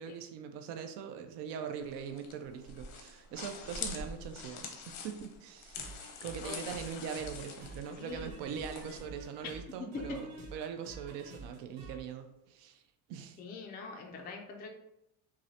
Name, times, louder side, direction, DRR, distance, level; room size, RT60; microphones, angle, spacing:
voice 1, 0.0-12.8 13.1-13.4, right 7 dB, 70° right, 7 dB, 0.6 m, -42 dB
sound 1, 1.8-9.0, left 5 dB, 85° left, 0.9 m, -45 dB
sound 2, 5.7-12.0, right 3 dB, 50° right, 1.5 m, -49 dB
voice 2, 8.0-8.4 9.8-9.9 13.4-14.7, left 4 dB, 25° left, 1 dB, 0.3 m, -44 dB
5.9 x 2.1 x 2.7 m, 0.84 s
cardioid pair, 165°, 43 cm